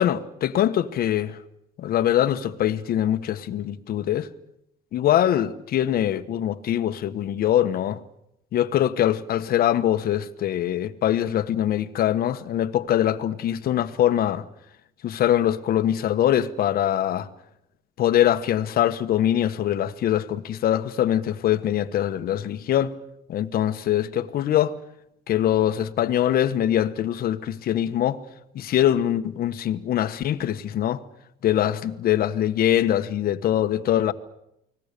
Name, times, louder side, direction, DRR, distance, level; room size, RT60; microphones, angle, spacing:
voice 1, 0.0-1.4 1.8-4.3 4.9-8.0 8.5-14.4 15.0-17.3 18.0-22.9 23.3-24.7 25.3-28.2 28.5-31.0 31.4-34.1, left 11 dB, 60° left, 1.3 m, -23 dB
30.0 x 20.5 x 6.8 m
cardioid pair, 110°, 17 cm